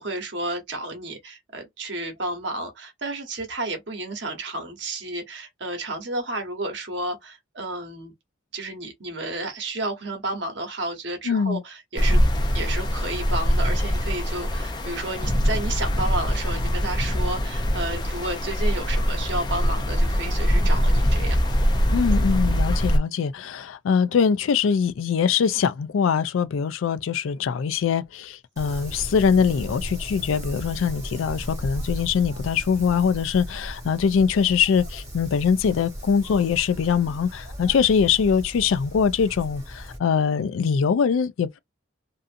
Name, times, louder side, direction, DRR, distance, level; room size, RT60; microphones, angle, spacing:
voice 1, 0.0-8.1 8.5-12.2 12.5-21.7, right 2 dB, 65° right, 1.0 m, -32 dB
voice 2, 11.3-11.6 21.9-41.6, left 6 dB, 90° left, 0.4 m, -23 dB
sound 1, 12.0-23.0, equal, 20° left, 0.4 m, -23 dB
Wind, 28.6-40.0, equal, 15° right, 0.8 m, -36 dB
2.6 x 2.4 x 2.5 m
head